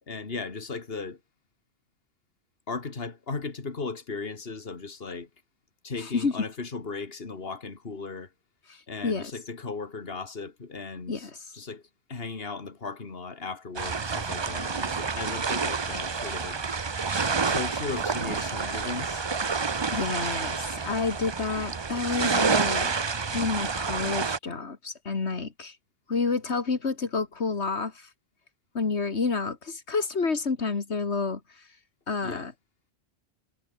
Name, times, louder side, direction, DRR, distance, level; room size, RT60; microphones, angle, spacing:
voice 1, 0.1-1.2 2.7-5.3 5.8-8.3 8.9-11.8 12.1-16.6 17.5-19.3 32.2-32.5, left 4 dB, 60° left, 2.4 m, -36 dB
voice 2, 6.0-6.3 8.7-9.3 11.1-11.5 19.9-22.9 23.3-25.8 26.1-28.1 28.7-31.7 32.1-32.5, left 4 dB, 80° left, 2.3 m, -29 dB
sound 1, 13.8-24.4, right 5 dB, 30° right, 0.6 m, -29 dB
omnidirectional pair, 1.1 m